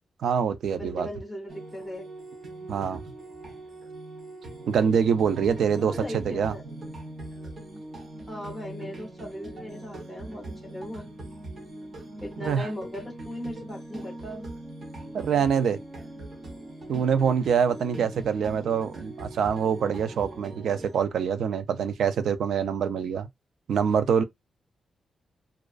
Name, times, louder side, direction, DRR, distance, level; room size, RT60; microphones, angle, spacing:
voice 1, 0.2-1.1 2.7-3.0 4.7-6.5 12.4-12.7 15.1-15.8 16.9-23.3 23.7-24.2, right 7 dB, 90° right, 0.4 m, -25 dB
voice 2, 0.8-2.1 5.4-6.6 8.3-11.1 12.2-14.5, equal, 5° right, 0.7 m, -38 dB
sound 1, 1.5-21.0, right 2 dB, 40° right, 0.7 m, -41 dB
2.3 x 2.3 x 2.3 m
wide cardioid pair, 160°, 0 cm